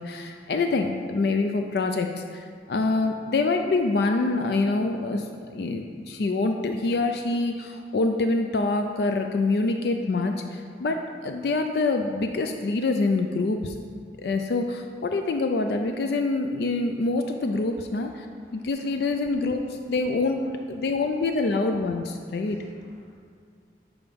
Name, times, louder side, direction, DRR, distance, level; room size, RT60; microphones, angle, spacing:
voice 1, 0.0-13.7 14.2-18.3 18.5-22.6, left 3 dB, 65° left, 5 dB, 0.4 m, -26 dB
voice 2, 17.9-18.7 22.4-23.2, equal, 15° left, -2 dB, 1.0 m, -59 dB
7.1 x 4.6 x 5.1 m, 2.2 s
head